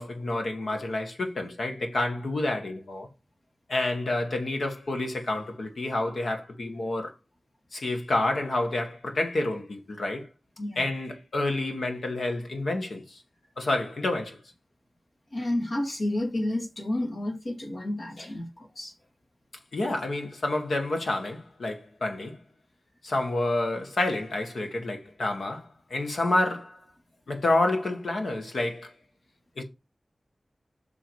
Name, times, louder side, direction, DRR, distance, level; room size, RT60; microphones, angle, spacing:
voice 1, 0.0-3.1 3.7-7.1 7.7-10.3 10.8-13.2 13.6-14.4 19.7-22.4 23.0-26.8 27.3-28.9 29.6-29.7, left 2 dB, 90° left, 1.7 m, -29 dB
voice 2, 15.3-18.9, left 1 dB, 75° left, 2.7 m, -30 dB
6.1 x 5.3 x 4.8 m
wide cardioid pair, 50°, 0 cm